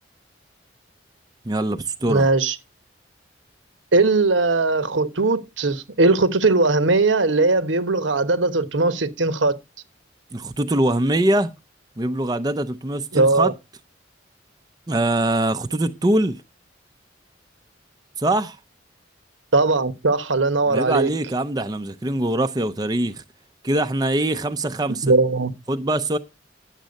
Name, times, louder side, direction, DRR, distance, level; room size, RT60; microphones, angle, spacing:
voice 1, 1.5-2.3 10.3-11.5 12.0-13.5 14.9-16.4 18.2-18.6 20.7-23.2 23.6-25.1 25.7-26.2, right 1 dB, 20° right, 0.5 m, -23 dB
voice 2, 2.1-2.5 3.9-9.6 13.1-13.5 19.5-21.1 25.0-25.5, right 3 dB, 85° right, 1.1 m, -19 dB
10.0 x 7.4 x 5.2 m
head